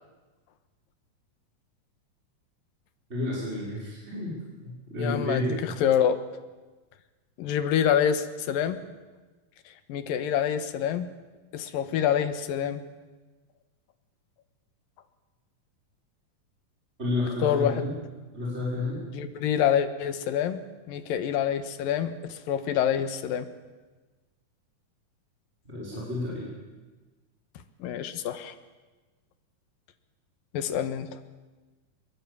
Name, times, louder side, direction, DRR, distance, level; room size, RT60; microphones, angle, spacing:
voice 1, 3.1-4.3 4.6-5.6 17.0-17.9 18.3-19.0 25.6-26.5, left 2 dB, 15° right, -6 dB, 6.2 m, -30 dB
voice 2, 5.0-6.2 7.4-8.8 9.9-11.1 11.5-12.8 17.4-17.8 19.1-20.6 20.9-23.5 27.8-28.5 30.5-31.1, left 9 dB, 85° left, 11 dB, 3.0 m, -26 dB
23.0 x 22.0 x 8.7 m, 1.3 s
omnidirectional pair, 4.0 m